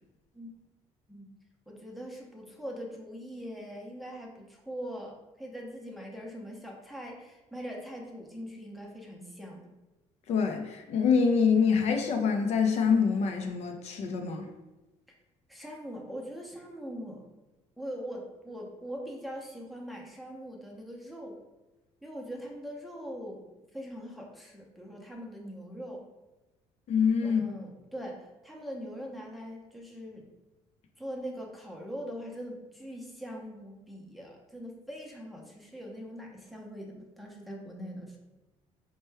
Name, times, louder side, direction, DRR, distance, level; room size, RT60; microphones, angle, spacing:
voice 1, 1.7-9.6 15.5-17.3 17.8-21.4 22.0-23.4 23.7-26.0 27.2-30.3 31.0-38.2, equal, ahead, -1 dB, 0.6 m, -42 dB
voice 2, 10.3-14.5 26.9-27.4, left 6 dB, 60° left, 4 dB, 0.5 m, -25 dB
4.3 x 2.2 x 3.3 m, 1.1 s
cardioid pair, 105°, 13 cm